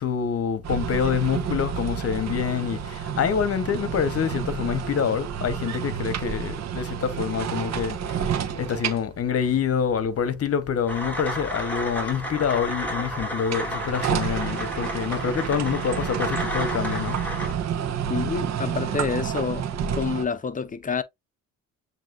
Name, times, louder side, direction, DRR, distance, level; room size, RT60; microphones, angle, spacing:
voice 1, 0.0-17.2, left 7 dB, 50° left, 1.0 m, -26 dB
sound 1, 0.6-11.0 13.3-20.2, right 8 dB, 60° right, 0.9 m, -30 dB
sound 2, 10.9-17.5, equal, 5° left, 2.9 m, -32 dB
voice 2, 18.1-19.7 19.9-21.0, left 5 dB, 25° left, 0.7 m, -28 dB
7.4 x 2.8 x 2.5 m
cardioid pair, 90°, 30 cm